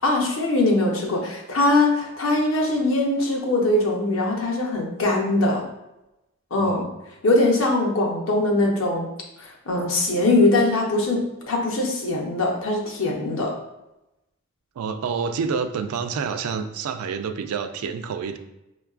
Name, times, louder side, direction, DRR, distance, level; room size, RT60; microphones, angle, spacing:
voice 1, 0.0-5.6 6.5-6.8 7.2-9.1 9.4-13.5, left 2 dB, 60° left, -1 dB, 0.7 m, -21 dB
voice 2, 6.6-6.9 14.8-18.4, right 5 dB, 85° right, 8 dB, 0.3 m, -28 dB
5.2 x 2.3 x 2.4 m, 0.94 s
head